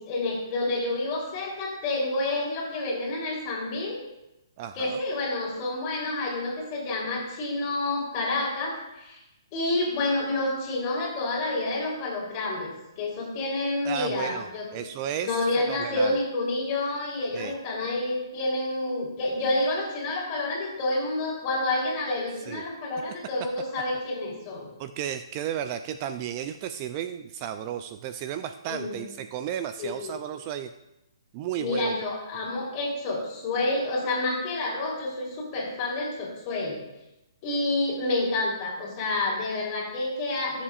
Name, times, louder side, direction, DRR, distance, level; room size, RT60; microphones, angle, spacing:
voice 1, 0.0-4.0 4.7-9.2 9.5-12.7 13.0-14.7 15.2-24.7 28.7-29.1 29.8-30.1 31.6-36.8 37.4-40.6, left 2 dB, 30° left, -3 dB, 3.4 m, -29 dB
voice 2, 4.6-5.0 13.8-16.2 17.3-17.5 22.5-22.6 24.8-30.7 31.3-31.9, right 10 dB, 30° right, 9 dB, 0.4 m, -33 dB
17.0 x 7.2 x 2.5 m, 0.92 s
hypercardioid pair, 150°, 2 cm